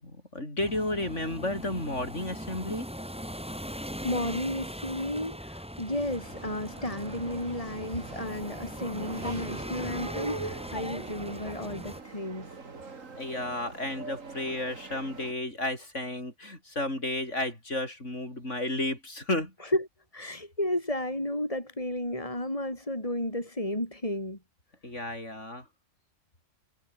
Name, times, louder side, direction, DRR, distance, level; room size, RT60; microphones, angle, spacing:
voice 1, 0.0-2.9 13.2-19.5 24.8-25.6, left 1 dB, 65° left, 8.1 m, -33 dB
sound 1, 0.6-12.0, equal, 5° right, 7.2 m, -40 dB
voice 2, 4.0-12.5 19.6-19.9 20.1-24.4, left 1 dB, 25° left, 5.6 m, -33 dB
sound 2, 6.1-15.3, right 4 dB, 80° right, 2.9 m, -43 dB
omnidirectional pair, 1.3 m